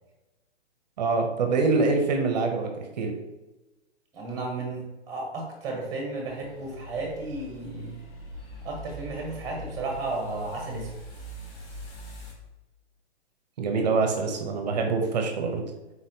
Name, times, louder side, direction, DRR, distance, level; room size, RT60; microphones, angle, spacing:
voice 1, 1.0-2.7 3.0-3.1 13.6-15.6, right 4 dB, 40° right, 4 dB, 0.6 m, -25 dB
voice 2, 4.1-8.0 8.6-10.9, right 3 dB, 10° right, 0 dB, 0.8 m, -33 dB
sound 1, 6.3-12.3, equal, 55° left, 1.4 m, -42 dB
4.1 x 4.0 x 2.6 m, 1.1 s
hypercardioid pair, 150°, 35 cm